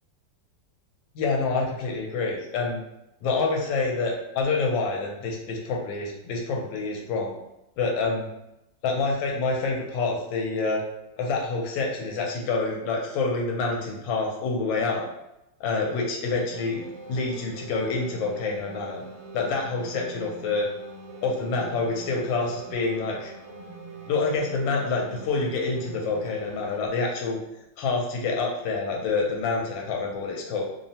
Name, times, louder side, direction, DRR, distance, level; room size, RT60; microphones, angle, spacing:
voice 1, 1.1-2.8 3.2-7.3 7.8-8.3 8.8-10.8 11.2-15.0 15.6-19.0 19.3-20.7 21.2-23.3 24.1-27.4 27.8-30.6, left 3 dB, 80° left, 0 dB, 1.3 m, -27 dB
sound 1, 16.5-26.8, right 3 dB, 85° right, 1.3 m, -43 dB
3.2 x 2.0 x 2.7 m, 0.88 s
omnidirectional pair, 2.0 m